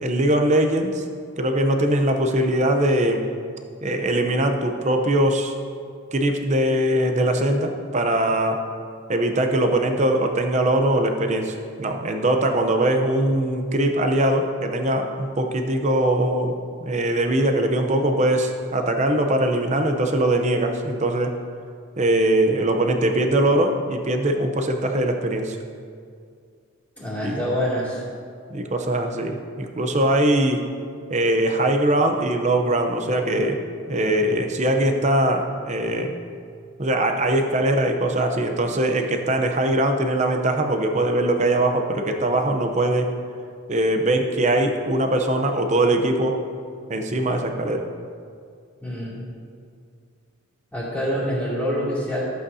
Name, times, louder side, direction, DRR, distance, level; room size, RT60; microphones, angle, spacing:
voice 1, 0.0-1.0 1.4-3.2 3.8-5.5 6.1-8.6 9.1-16.5 16.8-21.3 22.0-25.6 27.2-27.4 28.5-30.6 31.1-33.6 33.9-36.1 36.8-43.1 43.7-46.4 46.9-47.9, right 1 dB, 30° right, 4 dB, 0.7 m, -21 dB
voice 2, 27.0-28.0 48.8-49.2 50.7-52.2, equal, 5° left, -8 dB, 2.7 m, -26 dB
14.5 x 8.1 x 2.8 m, 2.2 s
head